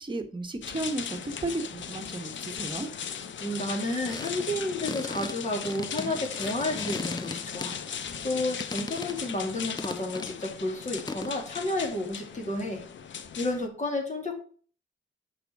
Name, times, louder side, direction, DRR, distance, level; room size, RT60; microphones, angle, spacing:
voice 1, 0.0-2.9 8.1-8.2, right 2 dB, 25° right, 4 dB, 1.4 m, -34 dB
sound 1, 0.6-13.7, left 7 dB, 65° left, 0.8 m, -38 dB
voice 2, 3.4-7.7 8.2-12.8 13.4-14.3, left 1 dB, 35° left, 1 dB, 3.0 m, -31 dB
sound 2, 4.1-8.1 8.4-9.3 9.8-10.3 11.0-11.4, left 3 dB, 20° left, 0.5 m, -38 dB
6.8 x 5.2 x 4.7 m, 0.42 s
cardioid pair, 75°, 20 cm